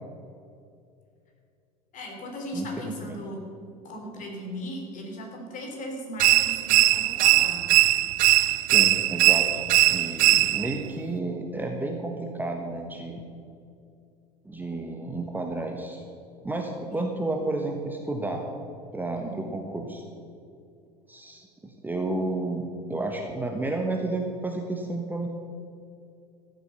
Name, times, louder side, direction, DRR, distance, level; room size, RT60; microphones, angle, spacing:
voice 1, 1.9-3.4 3.8-7.8 16.8-17.1 19.2-19.4, equal, 40° left, 1 dB, 3.5 m, -37 dB
voice 2, 2.5-3.2 8.7-9.6 9.9-13.2 14.4-16.0 16.4-18.4 18.9-20.0 21.1-25.3, right 2 dB, 10° right, 2 dB, 1.4 m, -31 dB
sound 1, 6.2-10.8, right 18 dB, 45° right, 0.4 m, -20 dB
14.5 x 8.2 x 6.9 m, 2.5 s
figure-of-eight pair, 75°, 20 cm